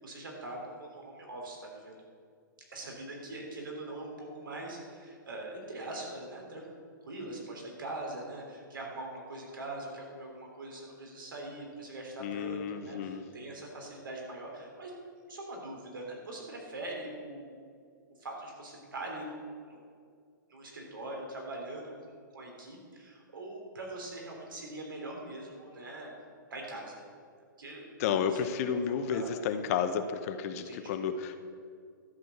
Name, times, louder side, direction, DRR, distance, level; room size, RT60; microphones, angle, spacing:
voice 1, 0.0-2.0 2.7-6.7 7.0-15.0 15.3-17.5 18.2-19.8 20.5-26.1 26.5-27.0 27.6-27.9 28.3-28.5 28.7-29.3 30.7-30.9, right 2 dB, 85° right, 0 dB, 3.4 m, -42 dB
voice 2, 12.2-13.2 28.0-31.4, left 7 dB, 45° left, 8 dB, 0.8 m, -32 dB
12.5 x 6.2 x 7.3 m, 2.2 s
hypercardioid pair, 135°, 11 cm